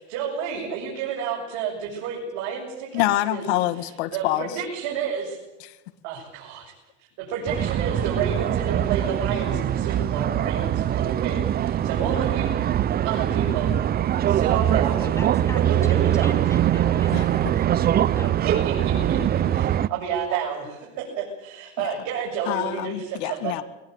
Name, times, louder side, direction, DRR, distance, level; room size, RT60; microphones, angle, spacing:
voice 1, 0.0-3.0 3.3-3.5 4.1-5.4 6.0-6.7 7.2-12.5 13.0-13.7 14.3-15.1 15.5-16.4 18.5-23.6, right 7 dB, 65° right, -3 dB, 7.4 m, -30 dB
voice 2, 2.9-4.5 5.6-5.8 17.1-17.3 21.8-21.9 22.5-23.6, left 16 dB, 75° left, 14 dB, 1.9 m, -26 dB
sound 1, 7.5-19.9, right 11 dB, 30° right, 0.7 m, -22 dB
voice 3, 15.0-17.7 18.1-18.4, left 1 dB, 10° left, 6 dB, 3.1 m, -40 dB
22.0 x 20.5 x 8.1 m, 1.0 s
supercardioid pair, 125°, 33 cm